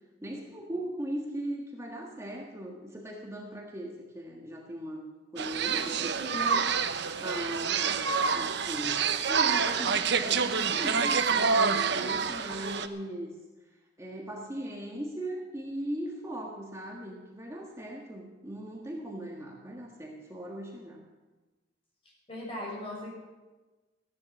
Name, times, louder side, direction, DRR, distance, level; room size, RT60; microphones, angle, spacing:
voice 1, 0.2-5.1 5.3-6.1 7.2-13.3 14.0-21.0, right 1 dB, 15° right, -1 dB, 1.5 m, -39 dB
sound 1, 5.4-12.9, right 6 dB, 65° right, 0.8 m, -27 dB
voice 2, 5.7-6.8 22.3-23.1, left 1 dB, 30° left, -4 dB, 6.7 m, -39 dB
15.5 x 10.5 x 7.2 m, 1.2 s
head